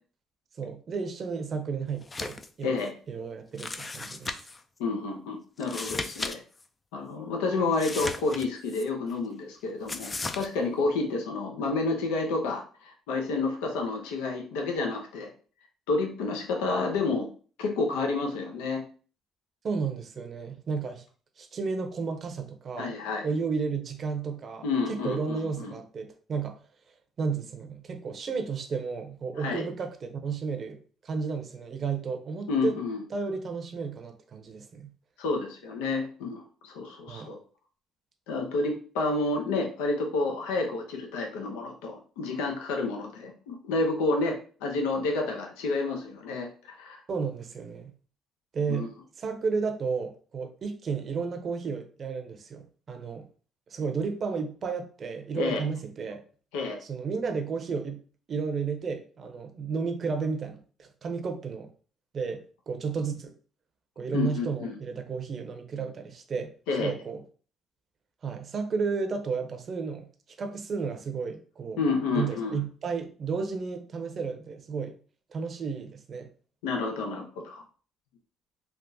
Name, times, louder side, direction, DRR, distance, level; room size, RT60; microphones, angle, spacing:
voice 1, 0.6-2.7 3.1-4.3 19.6-21.0 21.4-23.0 23.2-26.6 27.2-32.8 33.1-34.9 37.1-37.3 47.1-47.9 48.5-53.3 53.7-56.2 56.8-58.0 58.3-61.7 62.1-63.3 64.0-67.2 68.2-70.1 70.4-71.8 72.1-75.0 75.3-76.3, right 5 dB, 50° right, 0.6 m, -33 dB
sound 1, 2.0-2.5 2.8-2.9 3.6-4.6 5.6-6.4 6.6-6.7 7.7-8.8 9.9-10.5, left 3 dB, 30° left, 0.4 m, -36 dB
voice 2, 4.8-6.4 6.9-15.3 15.9-17.3 17.6-18.8 22.8-23.3 24.6-25.7 29.4-29.6 32.5-33.0 35.2-37.4 38.3-47.0 48.7-48.9 55.4-55.6 56.5-56.8 64.1-64.8 66.7-66.9 71.8-72.6 76.6-77.6, left 3 dB, 90° left, 0.6 m, -30 dB
3.5 x 2.4 x 2.6 m
supercardioid pair, 70°, 0 cm